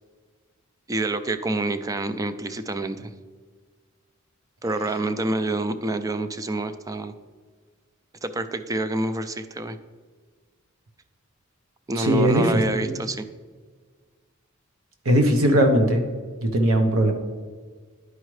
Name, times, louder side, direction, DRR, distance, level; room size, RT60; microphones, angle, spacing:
voice 1, 0.9-3.1 4.6-7.1 8.2-9.8 11.9-13.2, right 2 dB, 15° right, 10 dB, 0.3 m, -27 dB
voice 2, 12.0-12.9 15.0-16.0 16.4-17.1, right 1 dB, 75° right, 4 dB, 0.8 m, -19 dB
11.0 x 4.8 x 3.1 m, 1.5 s
head